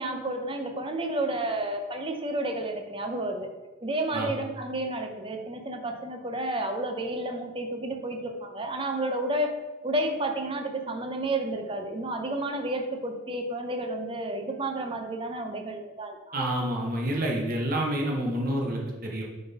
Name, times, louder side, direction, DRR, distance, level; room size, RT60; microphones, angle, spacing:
voice 1, 0.0-3.5 3.8-9.6 9.8-16.5, right 1 dB, 25° right, 4 dB, 0.6 m, -31 dB
voice 2, 16.3-19.2, right 1 dB, 45° right, -1 dB, 0.9 m, -28 dB
7.0 x 4.0 x 4.0 m, 1.2 s
head